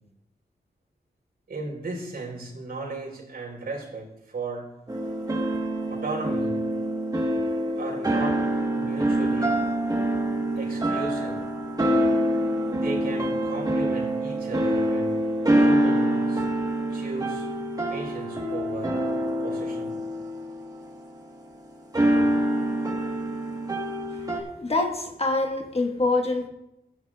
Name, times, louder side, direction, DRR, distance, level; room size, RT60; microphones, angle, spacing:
voice 1, 1.5-4.7 5.9-6.5 7.8-8.4 8.8-9.5 10.6-11.4 12.8-15.1 15.5-16.4 16.9-17.5 17.9-19.0 19.4-20.0, right 3 dB, 70° right, -2 dB, 4.0 m, -35 dB
sound 1, 4.9-21.3 21.9-24.4, right 1 dB, 20° right, 1.4 m, -25 dB
voice 2, 24.3-26.5, left 2 dB, 35° left, 2 dB, 1.4 m, -25 dB
15.5 x 9.4 x 2.4 m, 0.88 s
wide cardioid pair, 100°, 17 cm